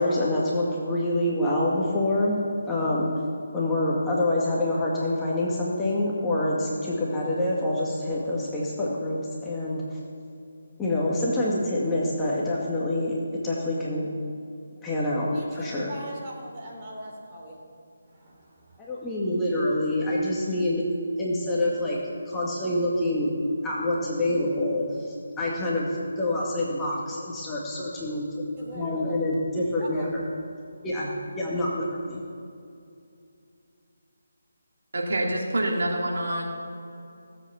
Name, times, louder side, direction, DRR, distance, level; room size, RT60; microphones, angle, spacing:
voice 1, 0.0-2.4 2.7-3.1 3.5-9.8 10.8-14.1 14.8-15.9 18.8-20.9 21.2-22.0 22.3-23.3 23.6-25.9 26.2-28.4 28.7-30.2 30.8-32.2, left 1 dB, 10° left, -6 dB, 2.0 m, -26 dB
voice 2, 15.3-17.6 18.0-18.8 28.6-29.4 29.8-30.1, right 1 dB, 25° right, -3 dB, 3.6 m, -41 dB
voice 3, 34.9-36.4, right 1 dB, 60° right, -1 dB, 2.9 m, -26 dB
17.0 x 8.1 x 7.1 m, 2.6 s
figure-of-eight pair, 155°, 0 cm